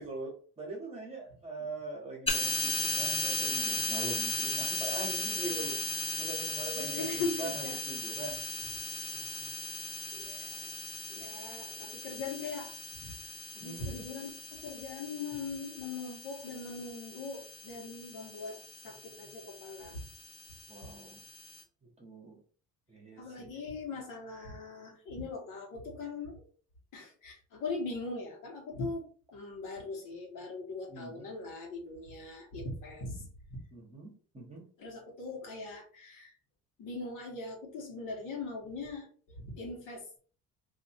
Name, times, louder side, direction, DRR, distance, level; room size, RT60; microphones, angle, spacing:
voice 1, 0.0-5.8 6.2-8.4 9.0-9.5 13.6-14.0 20.7-21.2 22.0-22.4 22.9-23.5 30.9-31.3 33.7-34.6, right 3 dB, 15° right, -1 dB, 1.1 m, -42 dB
sound 1, 2.3-21.6, left 2 dB, 15° left, 0.8 m, -37 dB
voice 2, 6.7-7.8 10.1-10.7 11.1-12.7 13.0-18.6 18.8-20.1 23.2-26.4 26.9-33.2 33.5-33.6 34.8-36.3 36.8-40.1, left 3 dB, 60° left, 0 dB, 1.4 m, -40 dB
2.7 x 2.5 x 4.3 m, 0.43 s
cardioid pair, 140°, 35 cm